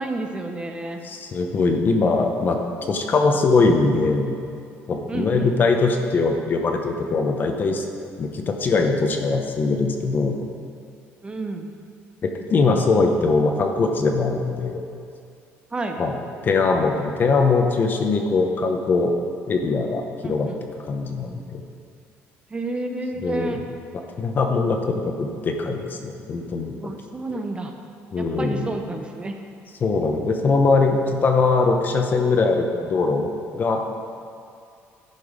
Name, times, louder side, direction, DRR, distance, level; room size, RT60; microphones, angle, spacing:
voice 1, 0.0-1.0 5.1-5.5 11.2-11.7 15.7-16.0 20.2-20.6 22.5-23.6 26.8-27.7 28.2-29.4, right 2 dB, 20° right, 4 dB, 0.7 m, -30 dB
voice 2, 1.0-4.3 4.9-7.8 8.2-10.4 12.2-14.8 16.0-16.1 16.4-19.1 19.5-20.5 20.9-21.6 23.2-23.6 24.2-26.9 28.1-28.7 29.8-33.8, left 3 dB, 40° left, 4 dB, 0.9 m, -21 dB
10.5 x 5.3 x 5.1 m, 2.4 s
cardioid pair, 125°, 5 cm